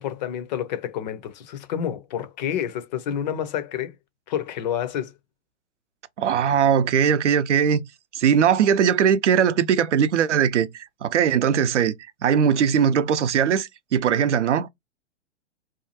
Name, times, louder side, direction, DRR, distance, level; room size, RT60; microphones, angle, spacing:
voice 1, 0.0-3.9 4.3-5.1, left 9 dB, 40° left, 0.5 m, -29 dB
voice 2, 6.2-7.8 8.1-11.9 12.2-14.7, right 8 dB, 70° right, 0.6 m, -20 dB
2.7 x 2.4 x 2.7 m
figure-of-eight pair, 115°, 36 cm